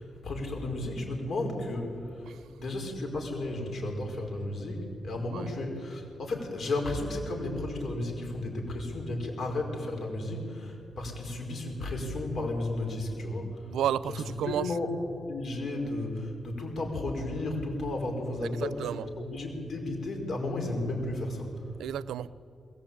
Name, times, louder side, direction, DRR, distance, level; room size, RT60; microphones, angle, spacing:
voice 1, 0.0-2.3 2.6-13.6 14.1-14.2 14.4-14.9 15.2-18.9 19.2-21.7, left 2 dB, 65° left, 5.1 m, -33 dB
voice 2, 13.7-14.7 18.4-19.1 21.8-22.3, right 10 dB, 85° right, 0.5 m, -32 dB
21.5 x 18.5 x 8.7 m
supercardioid pair, 45°, 0 cm